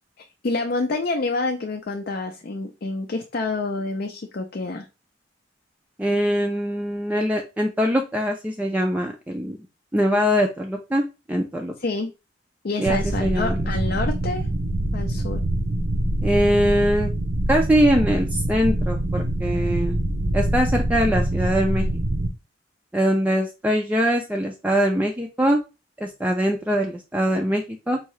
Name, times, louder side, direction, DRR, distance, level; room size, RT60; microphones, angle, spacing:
voice 1, 0.4-4.9 11.8-12.1 12.6-14.5 14.9-15.4, left 3 dB, 50° left, 3 dB, 0.5 m, -27 dB
voice 2, 6.0-9.6 9.9-11.7 12.8-13.6 16.2-17.1 17.5-20.0 20.3-21.9 22.9-25.6 26.0-28.0, equal, 10° right, 1 dB, 0.4 m, -22 dB
sound 1, 12.8-22.3, right 1 dB, 65° right, 0.7 m, -24 dB
4.6 x 2.7 x 3.1 m, 0.28 s
head